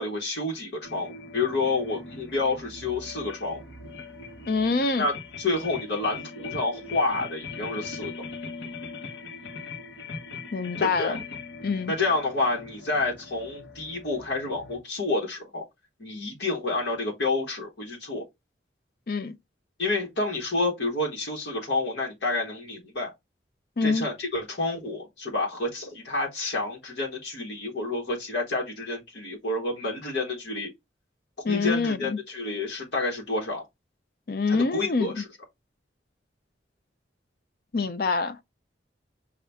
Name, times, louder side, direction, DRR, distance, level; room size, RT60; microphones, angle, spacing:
voice 1, 0.0-3.6 5.0-8.1 10.8-11.2 11.9-15.6 16.0-18.2 19.8-23.1 23.8-30.7 31.5-33.6 34.5-35.2, left 2 dB, 70° left, 1.3 m, -29 dB
sound 1, 0.8-14.8, left 4 dB, 90° left, 1.0 m, -41 dB
voice 2, 4.5-5.1 10.5-11.2 11.6-11.9 19.1-19.4 23.8-24.1 31.4-32.2 34.3-35.2 37.7-38.4, left 4 dB, 55° left, 0.5 m, -26 dB
5.7 x 2.4 x 3.4 m
head